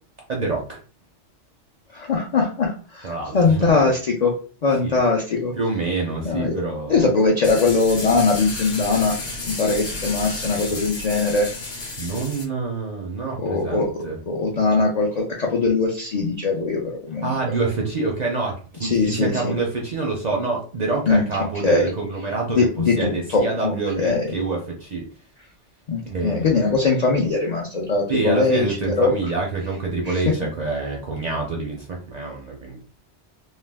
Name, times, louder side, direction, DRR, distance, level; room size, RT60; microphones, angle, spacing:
voice 1, 0.3-0.8 3.0-3.7 4.8-5.0 5.6-7.1 10.7-10.8 12.0-14.2 17.2-22.7 23.0-25.1 26.0-26.8 28.1-32.8, right 3 dB, 55° right, -1 dB, 0.5 m, -27 dB
voice 2, 1.9-4.3 4.6-5.5 6.2-6.5 6.9-9.2 9.5-11.5 13.4-13.9 14.3-17.4 18.8-19.5 21.1-21.2 21.6-21.9 22.5-24.3 25.9-29.1 30.1-30.3, left 3 dB, 65° left, 0 dB, 0.4 m, -21 dB
sound 1, 7.4-12.4, left 3 dB, 45° left, 0.8 m, -31 dB
2.4 x 2.2 x 3.3 m, 0.40 s
omnidirectional pair, 1.2 m